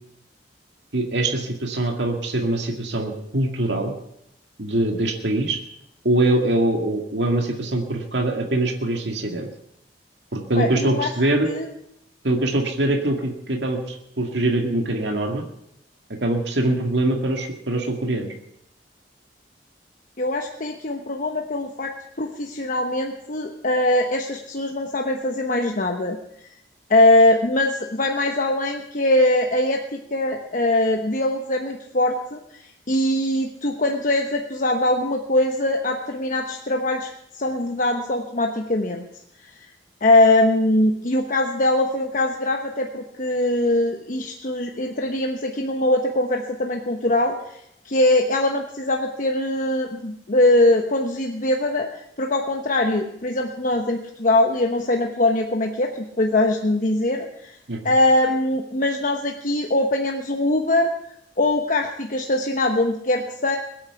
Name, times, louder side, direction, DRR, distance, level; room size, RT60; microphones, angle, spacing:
voice 1, 0.9-3.9 4.6-5.6 6.0-9.5 10.3-11.5 12.2-15.4 16.2-18.3 57.7-57.8, right 1 dB, 70° right, 2 dB, 2.1 m, -23 dB
voice 2, 10.6-11.1 11.4-11.7 20.2-26.5 26.9-39.0 39.4-39.7 40.0-57.6 57.8-60.9 61.4-63.6, left 1 dB, 50° left, 3 dB, 1.1 m, -22 dB
21.0 x 8.8 x 7.0 m, 0.78 s
head